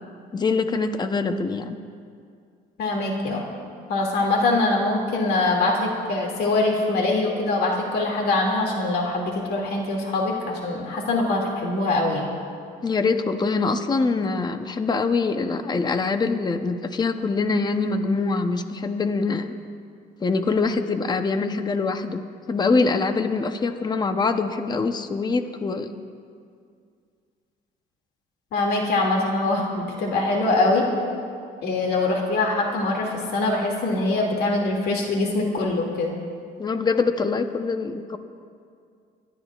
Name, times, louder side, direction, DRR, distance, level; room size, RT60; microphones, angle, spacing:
voice 1, 0.3-1.8 12.8-19.6 20.2-22.2 22.5-25.9 36.6-38.2, left 4 dB, 25° left, 8 dB, 0.8 m, -24 dB
voice 2, 2.8-3.4 3.9-12.3 28.5-30.9 31.6-36.2, left 2 dB, 70° left, 0 dB, 2.4 m, -23 dB
26.5 x 12.5 x 2.4 m, 2.3 s
cardioid pair, 110°, 17 cm